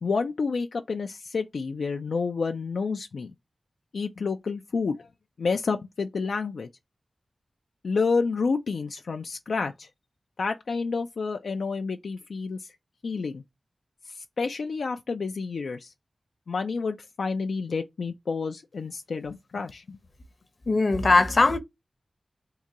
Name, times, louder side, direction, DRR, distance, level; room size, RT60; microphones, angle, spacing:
voice 1, 0.0-3.3 3.9-5.1 5.4-6.7 7.8-9.9 10.4-12.7 13.0-13.4 14.1-15.9 16.5-20.0, left 4 dB, 85° left, 0.3 m, -29 dB
voice 2, 20.7-21.6, left 3 dB, 55° left, 0.7 m, -20 dB
3.7 x 2.2 x 2.8 m
cardioid pair, 60°, 0 cm